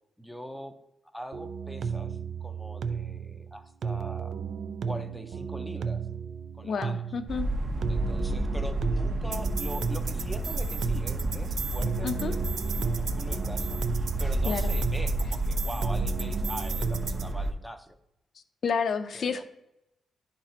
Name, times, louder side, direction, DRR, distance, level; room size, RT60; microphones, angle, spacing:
voice 1, 0.2-0.8 1.0-4.4 4.8-6.0 6.5-7.1 7.9-18.0 19.1-19.4, equal, ahead, 7 dB, 0.6 m, -42 dB
sound 1, 1.3-17.3, right 6 dB, 55° right, 0.5 m, -34 dB
voice 2, 6.6-7.5 12.0-12.3 14.5-14.7 18.6-19.4, left 6 dB, 50° left, 8 dB, 0.6 m, -30 dB
sound 2, 7.3-17.5, right 1 dB, 35° right, 0.9 m, -30 dB
11.0 x 4.1 x 4.3 m, 0.85 s
wide cardioid pair, 150°, 0 cm